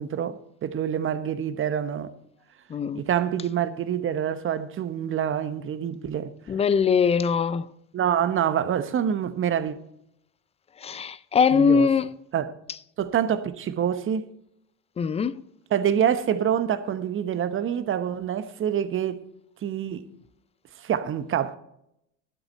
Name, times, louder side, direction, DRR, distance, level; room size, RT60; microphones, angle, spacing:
voice 1, 0.0-2.1 2.9-6.3 7.9-9.8 11.5-11.9 12.3-12.5 13.0-14.3 15.7-19.2 19.6-20.0 20.8-21.6, right 9 dB, 35° right, 1.0 m, -26 dB
voice 2, 2.7-3.0 6.5-7.7 10.8-12.1 15.0-15.4, left 6 dB, 15° left, 0.4 m, -22 dB
12.0 x 7.7 x 4.3 m
hypercardioid pair, 85°, 38 cm